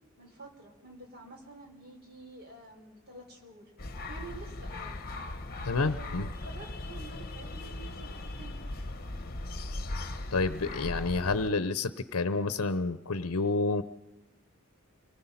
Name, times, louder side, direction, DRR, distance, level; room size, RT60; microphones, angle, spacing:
voice 1, 0.2-3.7 4.1-5.0 5.4-8.6, right 2 dB, 45° right, 2 dB, 4.2 m, -49 dB
sound 1, 3.8-11.5, left 2 dB, 40° left, 1.1 m, -39 dB
voice 2, 5.6-6.3 10.3-13.8, left 3 dB, 70° left, 12 dB, 0.8 m, -29 dB
27.5 x 20.0 x 5.7 m, 1.0 s
head